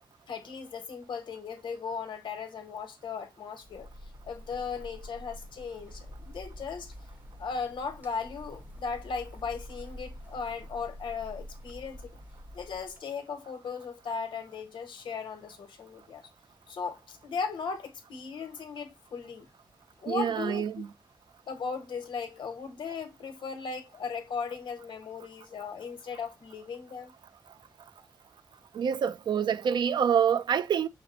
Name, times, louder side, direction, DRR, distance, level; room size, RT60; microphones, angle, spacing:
voice 1, 0.3-3.9 4.2-6.9 7.4-12.0 12.5-16.2 16.7-19.5 20.0-20.7 21.5-27.1, left 5 dB, 85° left, 1.1 m, -37 dB
sound 1, 3.6-13.0, equal, 20° right, 0.9 m, -47 dB
voice 2, 20.1-20.9 28.7-30.9, right 8 dB, 70° right, 0.4 m, -26 dB
5.9 x 2.0 x 3.9 m
wide cardioid pair, 175°, 8 cm